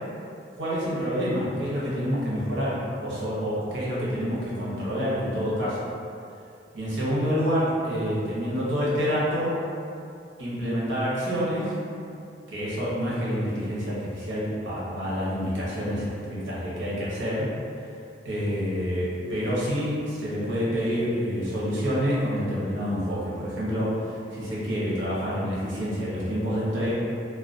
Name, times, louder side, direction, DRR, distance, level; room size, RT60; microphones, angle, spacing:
voice 1, 0.6-5.9 6.7-9.6 10.4-11.8 12.5-17.5 18.2-26.9, equal, 85° right, -8 dB, 0.8 m, -27 dB
2.3 x 2.2 x 2.4 m, 2.5 s
head